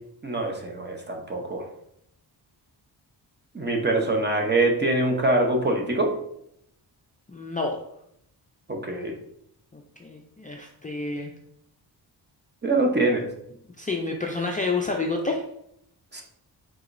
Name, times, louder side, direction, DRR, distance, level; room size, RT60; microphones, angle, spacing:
voice 1, 0.2-1.7 3.5-6.1 8.7-9.1 12.6-13.3 16.1-16.2, right 2 dB, 25° right, 2 dB, 0.8 m, -24 dB
voice 2, 7.3-7.8 9.7-11.3 13.8-15.4, left 3 dB, 20° left, 0 dB, 0.4 m, -29 dB
4.9 x 3.7 x 2.5 m, 0.74 s
wide cardioid pair, 115°, 43 cm